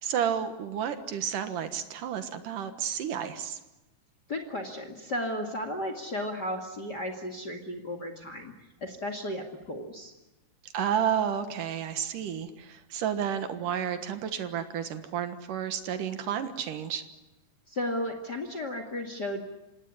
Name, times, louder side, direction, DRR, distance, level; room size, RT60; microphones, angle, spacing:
voice 1, 0.0-3.6 10.7-17.0, right 8 dB, 65° right, 9 dB, 2.4 m, -31 dB
voice 2, 4.3-8.5 8.8-10.1 17.7-19.4, left 1 dB, 40° left, 7 dB, 1.4 m, -34 dB
26.5 x 19.0 x 9.9 m, 1.0 s
omnidirectional pair, 5.2 m